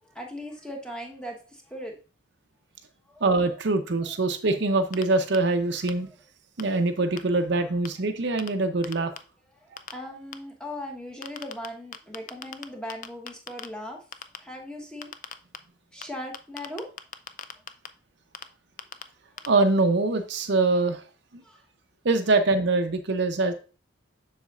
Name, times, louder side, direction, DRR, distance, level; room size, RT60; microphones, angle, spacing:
voice 1, 0.1-1.9 3.1-3.2 9.9-14.0 14.4-15.1 15.9-16.9 21.4-21.6, left 1 dB, 5° left, 1 dB, 1.1 m, -38 dB
voice 2, 3.2-6.1 6.6-9.1 19.5-21.0 22.0-23.5, right 3 dB, 60° right, 7 dB, 0.6 m, -23 dB
sound 1, 4.9-5.0 5.3-5.4 5.9-6.0 6.6-6.7 7.2-7.3 7.8-7.9 8.4-8.5 8.8-9.2 9.8-9.9 10.3-10.4 11.2-11.7 11.9-12.6 12.9-13.7 14.1-14.4 15.0-15.6 16.0-16.1 16.3-17.9 18.3-18.4 18.8-19.0 19.4-19.5, left 8 dB, 40° left, 0.4 m, -36 dB
7.2 x 6.4 x 2.4 m, 0.36 s
head